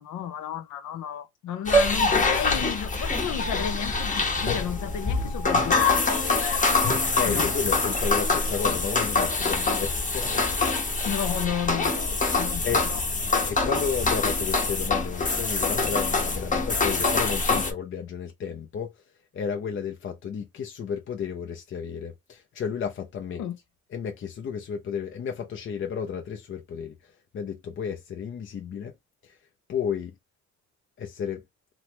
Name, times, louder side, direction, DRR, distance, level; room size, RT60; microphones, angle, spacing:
voice 1, 0.0-6.8 7.3-7.5 11.0-12.6 12.9-13.0 13.3-13.4 17.5-17.6 23.3-23.6, left 9 dB, 85° left, 0.7 m, -33 dB
sound 1, 1.7-17.7, left 3 dB, 25° left, 0.9 m, -25 dB
voice 2, 7.1-10.4 12.6-12.8 13.5-19.0 19.3-23.4 23.9-28.9 29.2-29.4 29.7-30.2 31.0-31.4, left 7 dB, 45° left, 0.5 m, -32 dB
3.0 x 2.1 x 2.9 m
cardioid pair, 105°, 29 cm